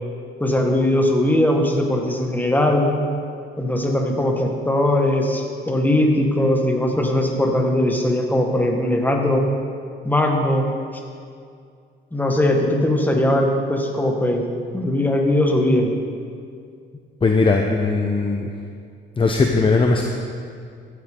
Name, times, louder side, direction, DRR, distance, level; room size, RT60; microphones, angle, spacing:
voice 1, 0.4-2.9 3.6-9.4 10.0-10.7 12.1-14.5 14.7-15.9, left 1 dB, 10° left, 2 dB, 1.7 m, -20 dB
voice 2, 17.2-18.5 19.2-20.1, left 3 dB, 25° left, 2 dB, 0.8 m, -18 dB
15.0 x 9.6 x 3.8 m, 2.3 s
cardioid pair, 90°, 20 cm